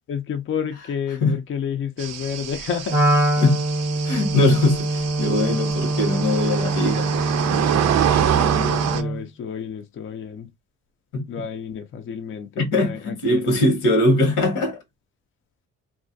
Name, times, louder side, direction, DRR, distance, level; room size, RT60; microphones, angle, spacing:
voice 1, 0.1-3.0 8.2-10.5 11.3-13.7, left 7 dB, 45° left, 0.5 m, -30 dB
sound 1, 2.0-9.0, right 10 dB, 60° right, 0.4 m, -26 dB
Wind instrument woodwind instrument, 2.9-9.3, right 2 dB, 5° right, 0.8 m, -24 dB
voice 2, 4.0-7.1 11.1-11.2 12.6-14.8, left 2 dB, 90° left, 1.1 m, -21 dB
2.3 x 2.1 x 2.5 m
cardioid pair, 90°, 30 cm